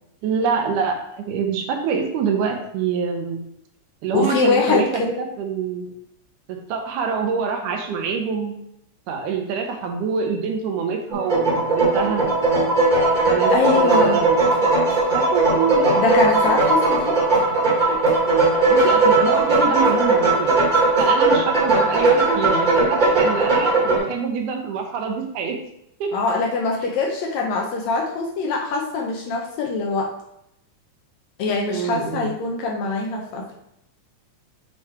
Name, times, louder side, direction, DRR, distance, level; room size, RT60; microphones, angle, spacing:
voice 1, 0.2-3.4 4.0-4.9 5.2-6.0 6.5-8.5 9.1-12.2 13.3-14.7 15.1-15.9 18.7-20.6 21.0-23.7 23.9-25.6 26.0-26.1 31.7-32.3, right 6 dB, 80° right, 3 dB, 2.4 m, -25 dB
voice 2, 4.1-5.1 13.5-14.2 16.0-17.2 21.7-21.8 26.1-30.1 31.4-33.5, left 3 dB, 75° left, 0 dB, 1.8 m, -23 dB
sound 1, 11.1-24.0, right 2 dB, 25° right, 1.0 m, -18 dB
7.8 x 3.1 x 4.3 m, 0.78 s
omnidirectional pair, 3.7 m